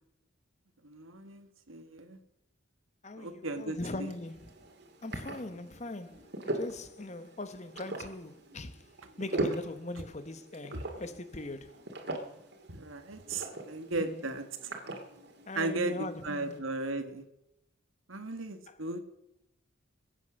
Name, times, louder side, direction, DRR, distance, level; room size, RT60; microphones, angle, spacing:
voice 1, 0.8-2.2 3.2-4.1 10.7-10.8 12.7-14.7 15.6-17.2 18.1-19.0, right 2 dB, 80° right, 1.7 m, -36 dB
voice 2, 3.0-4.5 5.0-8.9 9.2-11.8 14.0-14.2 15.5-16.6 18.7-18.8, left 2 dB, 35° left, 0.9 m, -41 dB
sound 1, 3.7-16.6, right 2 dB, 55° right, 2.5 m, -41 dB
22.0 x 8.8 x 6.4 m
head